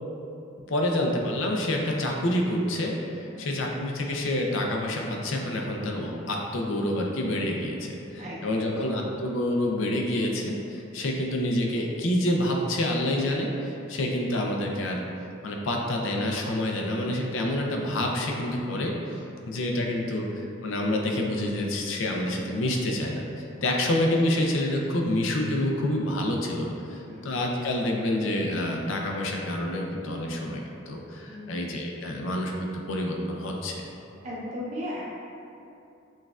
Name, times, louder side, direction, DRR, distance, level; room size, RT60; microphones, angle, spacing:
voice 1, 0.7-15.0 15.4-20.3 20.6-23.2 23.6-32.5 32.9-33.8, left 1 dB, 75° left, 0 dB, 0.5 m, -28 dB
voice 2, 3.3-3.7 8.2-8.9 27.0-27.4 31.3-31.7 34.2-35.0, left 1 dB, 35° right, -7 dB, 0.6 m, -37 dB
6.2 x 2.4 x 2.3 m, 2.7 s
head